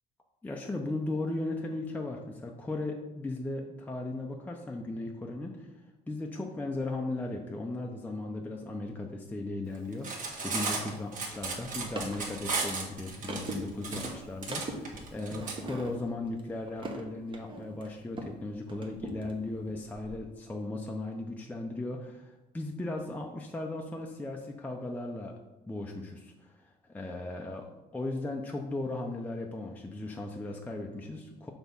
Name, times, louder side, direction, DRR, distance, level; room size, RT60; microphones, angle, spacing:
voice 1, 0.4-25.3 25.7-27.7 27.9-31.5, left 2 dB, 10° left, 1 dB, 0.6 m, -37 dB
Cutlery silverware, 9.9-15.6, right 4 dB, 50° right, 1.5 m, -35 dB
sound 1, 11.3-18.4 18.7-20.2, right 2 dB, 30° right, 1.0 m, -42 dB
6.2 x 3.5 x 5.4 m, 1.0 s
cardioid pair, 110°, 17 cm